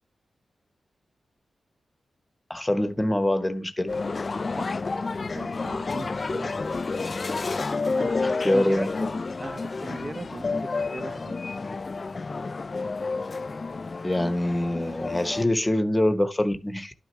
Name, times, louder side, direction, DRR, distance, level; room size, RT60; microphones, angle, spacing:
voice 1, 2.5-3.9 8.2-9.1 14.0-16.9, left 1 dB, 15° left, 1.1 m, -25 dB
sound 1, 3.9-15.5, left 3 dB, 45° left, 0.4 m, -30 dB
voice 2, 5.2-6.6 8.0-8.9 9.4-11.4, right 2 dB, 40° right, 1.1 m, -38 dB
11.5 x 6.4 x 3.3 m
cardioid pair, 65°, 0 cm